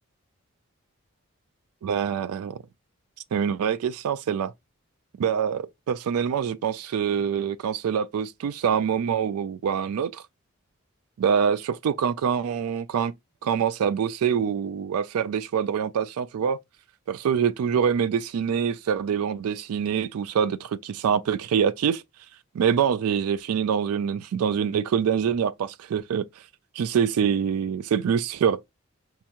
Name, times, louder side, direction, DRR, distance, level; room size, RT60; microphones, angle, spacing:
voice 1, 1.8-2.6 3.3-4.5 5.2-10.2 11.2-13.1 13.4-16.6 17.1-22.0 22.5-26.2 26.8-28.6, right 7 dB, 85° right, 0.3 m, -25 dB
4.5 x 2.9 x 2.4 m
head